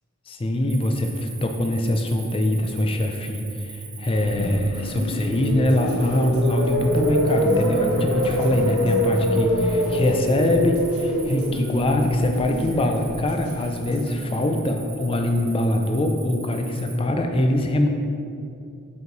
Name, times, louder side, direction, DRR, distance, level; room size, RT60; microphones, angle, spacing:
voice 1, 0.3-17.9, left 1 dB, 25° left, 4 dB, 0.4 m, -23 dB
Cricket, 0.7-17.0, right 5 dB, 35° right, 0.9 m, -42 dB
sound 1, 4.1-14.2, left 1 dB, 80° left, 0.8 m, -44 dB
sound 2, 4.4-14.5, equal, 60° right, 0.7 m, -25 dB
5.3 x 4.7 x 3.8 m, 2.5 s
head